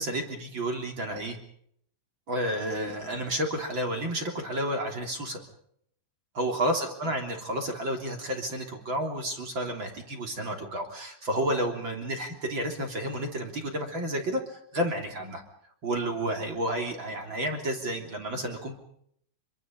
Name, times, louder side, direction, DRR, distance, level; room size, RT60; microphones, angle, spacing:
voice 1, 0.0-1.4 2.3-5.4 6.3-15.4 15.8-18.7, right 1 dB, 30° right, 3 dB, 3.2 m, -31 dB
26.5 x 24.5 x 5.4 m, 0.68 s
omnidirectional pair, 5.5 m